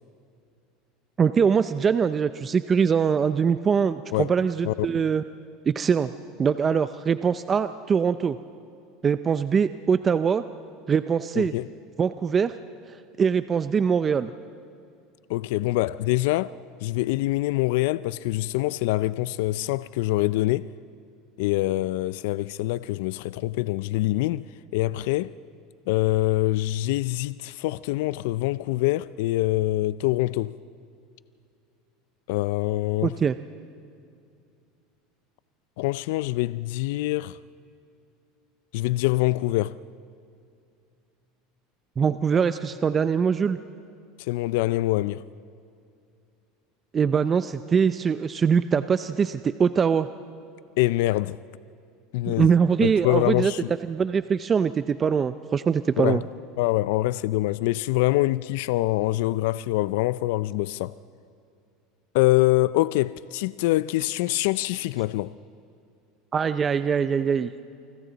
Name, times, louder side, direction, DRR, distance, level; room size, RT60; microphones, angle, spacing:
voice 1, 1.2-5.2 5.7-6.1 6.4-8.4 9.0-10.4 10.9-11.5 12.0-12.6 13.2-14.3 33.0-33.4 42.0-43.6 46.9-50.1 52.3-53.5 53.8-56.2 66.3-67.5, right 6 dB, 25° right, 0.5 m, -23 dB
voice 2, 11.4-11.7 15.3-16.6 16.8-20.7 21.4-25.3 25.9-30.6 32.3-33.1 35.8-37.4 38.7-39.8 44.2-45.2 50.8-51.4 52.1-52.5 52.8-53.7 56.0-56.2 56.6-61.0 62.1-65.3, left 17 dB, 75° left, 0.4 m, -25 dB
28.5 x 25.0 x 4.0 m
supercardioid pair, 125°, 0 cm